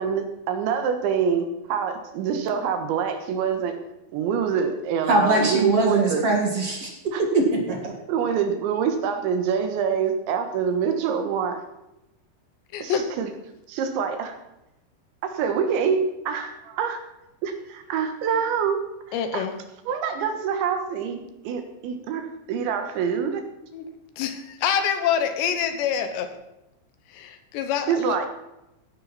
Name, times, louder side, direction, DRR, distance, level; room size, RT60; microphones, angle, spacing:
voice 1, 0.0-3.8 4.1-6.2 7.1-7.2 8.1-11.6 12.8-13.3 13.7-14.4 15.2-17.0 17.4-18.8 19.1-19.4 19.9-23.4 27.9-28.3, right 7 dB, 90° right, 6 dB, 3.8 m, -25 dB
voice 2, 5.1-6.9 7.2-7.9, right 2 dB, 50° right, 1 dB, 2.0 m, -22 dB
voice 3, 12.7-13.1 19.1-19.5 23.7-23.8 24.2-26.4 27.1-28.3, left 8 dB, 80° left, 8 dB, 3.4 m, -26 dB
17.0 x 10.5 x 4.2 m, 0.92 s
omnidirectional pair, 5.1 m